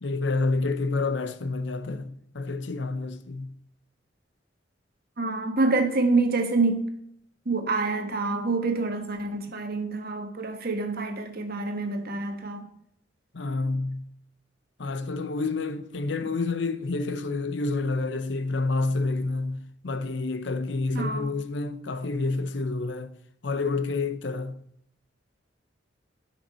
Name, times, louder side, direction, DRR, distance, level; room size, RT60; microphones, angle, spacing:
voice 1, 0.0-3.5 13.3-14.1 14.8-23.1 23.4-24.6, left 3 dB, 70° left, 0.8 m, -29 dB
voice 2, 5.2-6.9 7.4-12.7 20.9-21.3, right 3 dB, 55° right, 1.4 m, -27 dB
12.0 x 6.0 x 5.6 m
head